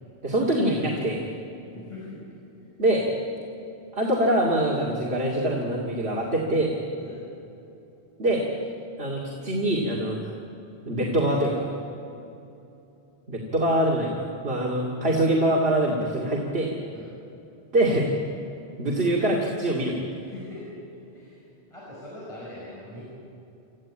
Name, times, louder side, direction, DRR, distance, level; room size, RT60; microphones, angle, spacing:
voice 1, 0.2-1.3 2.8-3.1 3.9-6.7 8.2-8.4 9.0-10.4 10.9-11.7 13.3-16.7 17.7-18.1 18.8-20.0, right 1 dB, 65° right, -3 dB, 2.6 m, -24 dB
voice 2, 1.7-2.2 2.6-2.7 7.0-7.2 16.9-17.1 20.2-20.6 21.1-21.4 21.7-23.0, left 2 dB, 30° left, -7 dB, 5.8 m, -42 dB
27.0 x 15.0 x 8.7 m, 2.8 s
omnidirectional pair, 1.1 m